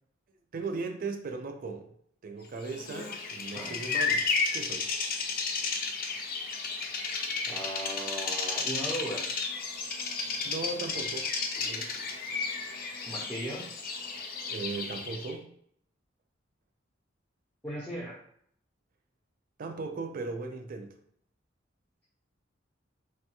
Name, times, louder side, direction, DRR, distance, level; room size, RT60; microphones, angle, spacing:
voice 1, 0.5-1.9 2.2-4.9 10.4-11.3 11.6-11.9 14.4-15.5 19.6-21.0, right 3 dB, 50° right, 6 dB, 0.4 m, -37 dB
Bird vocalization bird call bird song, 2.7-15.3, left 4 dB, 50° left, 0.5 m, -33 dB
voice 2, 7.5-9.3 13.0-13.7 17.6-18.2, equal, 5° left, -4 dB, 0.6 m, -37 dB
3.1 x 2.2 x 2.9 m, 0.66 s
head